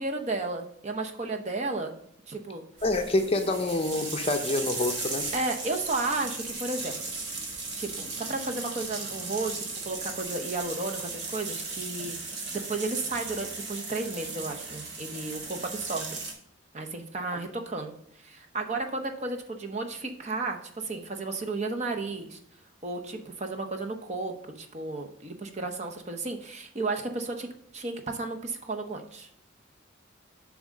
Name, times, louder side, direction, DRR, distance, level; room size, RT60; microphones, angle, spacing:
voice 1, 0.0-1.9 2.3-2.6 5.3-7.0 7.7-9.6 9.9-16.2 16.7-17.9 18.2-22.4 22.8-27.5 27.7-29.3, right 3 dB, 35° right, 4 dB, 0.7 m, -33 dB
voice 2, 2.8-5.3, left 2 dB, 30° left, 7 dB, 0.6 m, -27 dB
sound 1, 2.8-16.3, right 3 dB, 55° right, 1.6 m, -36 dB
7.1 x 3.6 x 6.4 m, 0.68 s
head